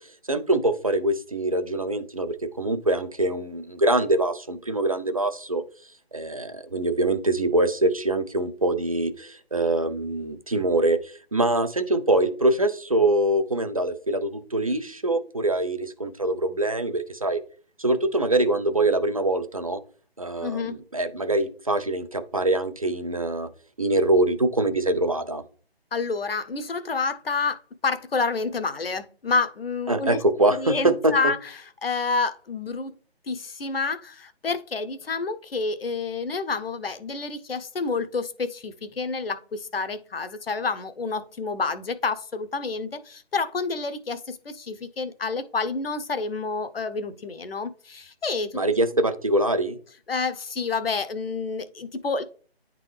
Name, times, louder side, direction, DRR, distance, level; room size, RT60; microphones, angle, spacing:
voice 1, 0.3-5.6 6.1-17.4 17.8-19.8 20.2-23.5 23.8-25.4 29.9-31.1 48.5-49.8, right 2 dB, 35° right, 10 dB, 0.4 m, -24 dB
voice 2, 20.4-20.8 25.9-30.2 30.5-31.5 31.8-32.9 33.3-48.6 50.1-52.2, left 4 dB, 65° left, 11 dB, 0.8 m, -29 dB
9.5 x 3.7 x 3.3 m, 0.43 s
figure-of-eight pair, 155°, 31 cm